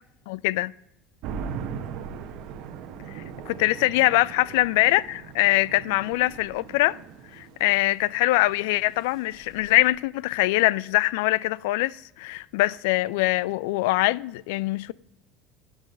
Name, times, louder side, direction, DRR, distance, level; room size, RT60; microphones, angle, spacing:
voice 1, 0.3-0.7 3.1-7.0 7.3-14.9, left 19 dB, 85° left, 0.3 m, -23 dB
sound 1, 1.2-9.9, right 7 dB, 60° right, 1.1 m, -40 dB
14.5 x 6.2 x 5.1 m
cardioid pair, 130°, 0 cm